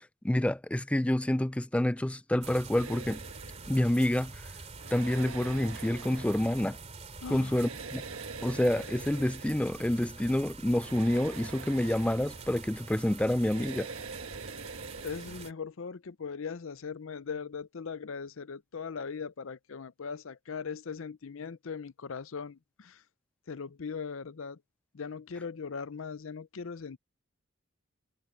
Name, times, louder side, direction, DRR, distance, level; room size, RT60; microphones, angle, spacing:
voice 1, 0.0-3.2 3.7-4.4 4.9-6.8 7.3-8.0 8.4-13.9, left 1 dB, 5° left, 0.3 m, -28 dB
sound 1, 2.4-15.5, right 3 dB, 30° right, 3.1 m, -46 dB
sound 2, 2.8-15.5, right 4 dB, 80° right, 1.3 m, -46 dB
voice 2, 7.2-7.6 15.0-23.0 23.5-24.6 24.9-27.0, left 5 dB, 70° left, 0.6 m, -39 dB
head